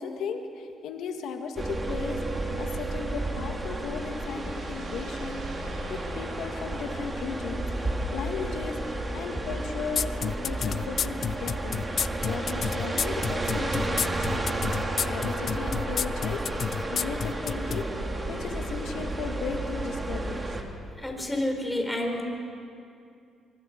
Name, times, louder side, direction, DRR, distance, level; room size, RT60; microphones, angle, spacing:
voice 1, 0.0-14.5 15.0-17.8 18.3-20.5 21.1-21.3, left 5 dB, 80° left, 5 dB, 2.0 m, -36 dB
sound 1, 1.6-20.6, right 2 dB, 25° right, 2.5 m, -32 dB
sound 2, 3.3-8.3, right 2 dB, 60° right, 5.6 m, -46 dB
sound 3, 10.0-17.8, left 7 dB, 55° left, 0.4 m, -29 dB
voice 2, 21.0-22.2, left 1 dB, 10° left, 2 dB, 4.2 m, -29 dB
24.5 x 23.0 x 5.4 m, 2.5 s
cardioid pair, 90°, 0 cm